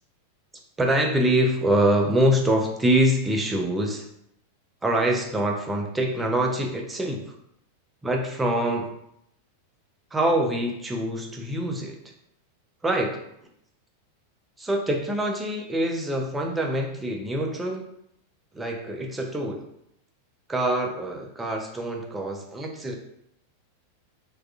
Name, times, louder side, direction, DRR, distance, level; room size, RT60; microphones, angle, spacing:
voice 1, 0.8-4.1 4.8-7.3 8.0-8.9 10.1-12.0 12.8-13.2 14.6-17.8 18.5-19.7 20.5-23.0, right 1 dB, 10° right, 1 dB, 0.5 m, -25 dB
3.5 x 2.4 x 2.3 m, 0.76 s
figure-of-eight pair, 90°, 0 cm